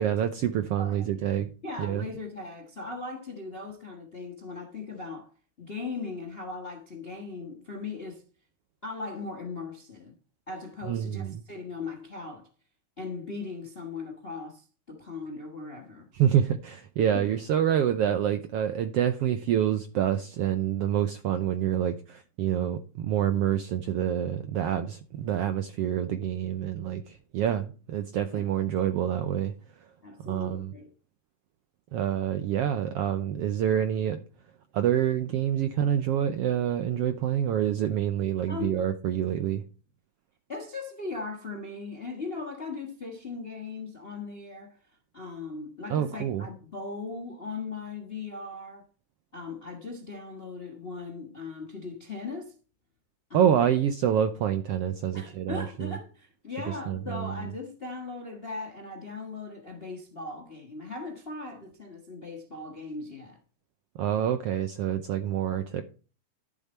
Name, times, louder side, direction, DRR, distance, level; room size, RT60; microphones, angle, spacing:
voice 1, 0.0-1.5 1.8-2.1 10.9-11.4 16.1-29.5 30.2-30.7 31.9-34.2 34.7-39.6 45.9-46.5 53.3-56.0 56.9-57.4 64.0-65.8, right 10 dB, 75° right, 1.4 m, -27 dB
voice 2, 0.8-1.3 1.6-5.3 5.6-8.2 8.8-10.1 10.5-12.5 13.0-16.1 17.0-17.3 28.3-28.5 30.0-30.9 38.5-38.9 40.5-44.8 45.1-48.8 49.3-52.5 53.3-53.6 55.1-63.4, left 3 dB, 40° left, 0.8 m, -39 dB
11.5 x 7.3 x 4.3 m
omnidirectional pair, 3.4 m